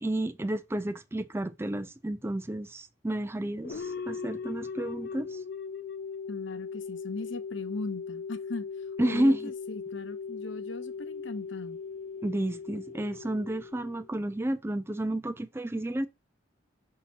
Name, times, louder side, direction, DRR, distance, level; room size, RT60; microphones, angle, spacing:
voice 1, 0.0-5.4 9.0-9.5 12.2-16.1, right 1 dB, 10° right, 0.4 m, -31 dB
sound 1, 3.6-14.3, left 5 dB, 50° left, 0.5 m, -39 dB
voice 2, 6.3-11.8, left 3 dB, 70° left, 0.8 m, -39 dB
6.2 x 2.9 x 5.7 m
head